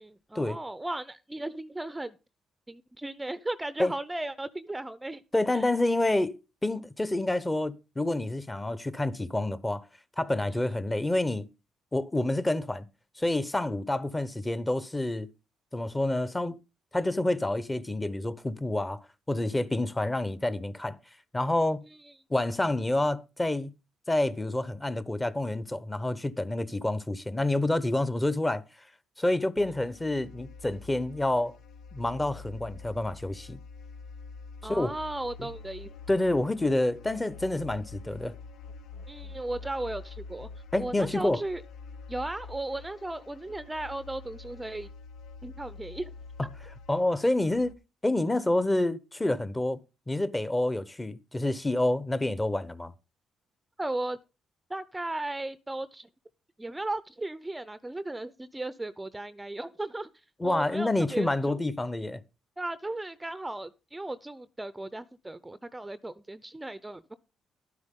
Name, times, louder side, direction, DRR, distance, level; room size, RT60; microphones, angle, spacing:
voice 1, 0.0-2.2 2.7-5.2 5.5-5.6 10.5-10.7 34.6-35.9 39.1-40.5 40.8-41.6 42.1-44.9 45.4-46.1 53.8-54.2 54.7-56.1 56.6-60.1 60.4-61.6 62.6-67.1, right 2 dB, 15° right, 0.6 m, -36 dB
voice 2, 5.3-6.4 6.6-9.8 10.2-11.5 11.9-12.8 13.2-15.3 15.7-16.6 16.9-21.0 21.3-21.8 22.3-23.7 24.1-28.6 29.2-31.5 31.9-33.6 34.7-35.0 35.4-35.5 36.1-38.3 40.7-41.4 46.4-46.5 46.9-47.8 48.0-49.8 50.1-52.9 60.4-62.2, left 1 dB, 15° left, 0.9 m, -28 dB
sound 1, 29.6-47.7, left 4 dB, 75° left, 0.7 m, -46 dB
12.0 x 9.6 x 3.7 m
cardioid pair, 90°, 0 cm